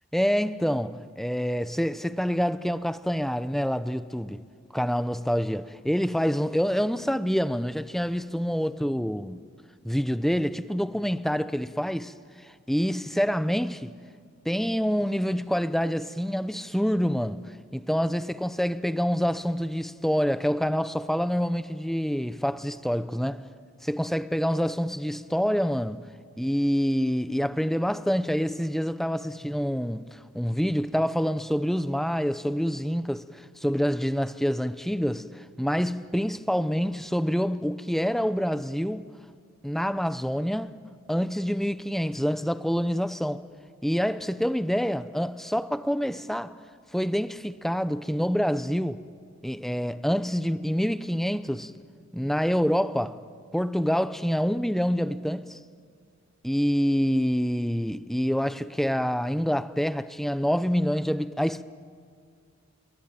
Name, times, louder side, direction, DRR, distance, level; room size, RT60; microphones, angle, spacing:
voice 1, 0.1-4.4 4.7-9.4 9.8-12.1 12.7-13.9 14.5-17.4 17.7-23.4 23.8-26.0 26.4-39.1 39.6-40.8 41.1-43.4 43.8-46.5 46.9-49.0 49.4-51.7 52.1-53.2 53.5-55.6 56.4-61.6, equal, ahead, 0.6 m, -26 dB
28.0 x 23.5 x 9.1 m
head